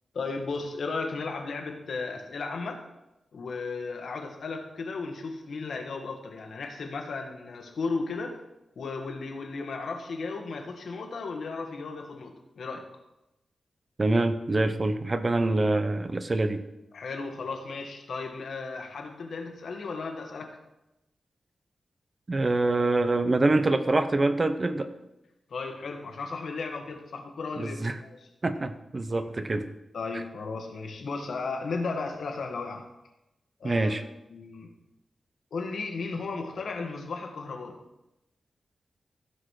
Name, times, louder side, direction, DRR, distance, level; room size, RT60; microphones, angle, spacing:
voice 1, 0.1-2.8 3.3-8.4 8.8-12.9 16.9-20.6 25.5-28.3 29.1-29.2 29.9-32.9 33.6-33.9 34.3-34.7 35.5-37.8, left 4 dB, 80° left, 3 dB, 1.8 m, -35 dB
voice 2, 14.0-16.6 22.3-24.9 27.6-28.0 28.4-29.6 33.6-34.0, right 2 dB, 30° right, 9 dB, 0.8 m, -25 dB
15.0 x 6.3 x 4.9 m, 0.92 s
wide cardioid pair, 145°, 0 cm